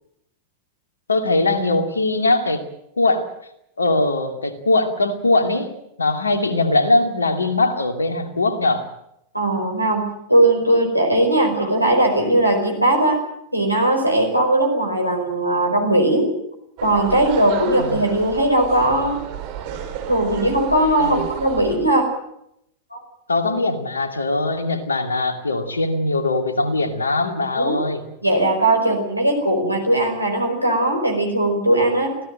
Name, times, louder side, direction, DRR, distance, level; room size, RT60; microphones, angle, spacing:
voice 1, 1.1-2.6 3.0-3.3 3.8-5.7 6.0-8.9 17.8-18.0 21.0-21.2 23.3-28.0, left 2 dB, 75° left, 7 dB, 2.5 m, -21 dB
voice 2, 9.3-10.0 10.3-13.2 13.5-16.3 16.8-19.2 20.1-22.1 22.9-23.0 27.5-27.8 28.2-32.1, right 1 dB, 90° right, 3 dB, 4.9 m, -19 dB
sound 1, 16.8-21.8, right 8 dB, 45° right, 4.7 m, -32 dB
25.5 x 17.0 x 7.8 m, 0.78 s
figure-of-eight pair, 90°, 0 cm